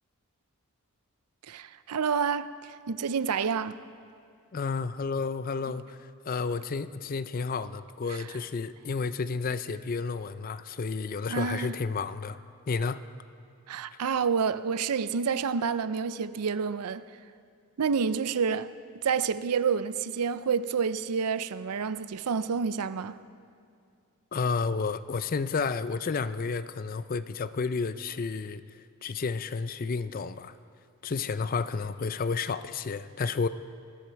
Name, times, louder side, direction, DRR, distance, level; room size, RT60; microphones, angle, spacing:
voice 1, 1.5-3.8 8.1-8.2 11.3-11.7 13.7-17.0 17.8-18.7 19.0-23.2, right 6 dB, 90° right, 0.5 m, -29 dB
voice 2, 4.5-6.0 6.2-12.4 12.7-13.0 24.3-28.6 29.0-30.5 31.0-33.5, left 4 dB, 40° left, 0.4 m, -31 dB
20.0 x 15.0 x 4.6 m
head